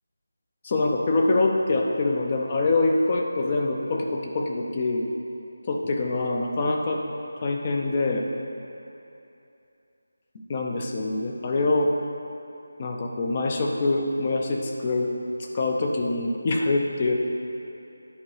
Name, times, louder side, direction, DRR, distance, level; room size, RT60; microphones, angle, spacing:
voice 1, 0.6-5.1 5.7-7.0 7.4-8.3 10.5-11.9 12.8-15.1 15.5-17.1, left 2 dB, 25° left, 1 dB, 0.6 m, -24 dB
9.9 x 4.6 x 5.0 m, 2.7 s
figure-of-eight pair, 175°, 0 cm